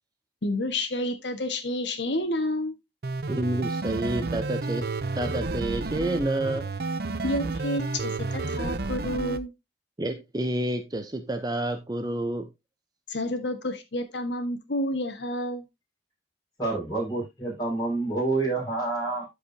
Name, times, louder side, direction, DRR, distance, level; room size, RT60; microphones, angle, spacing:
voice 1, 0.4-2.7 7.2-9.5 13.1-15.6, left 1 dB, 85° left, 1.6 m, -29 dB
sound 1, 3.0-9.4, right 3 dB, 60° right, 0.7 m, -31 dB
voice 2, 3.3-4.9 5.2-6.7 10.0-12.5, right 1 dB, 25° right, 0.7 m, -29 dB
voice 3, 16.6-19.3, right 3 dB, 25° left, 5.8 m, -28 dB
13.0 x 4.9 x 2.7 m
head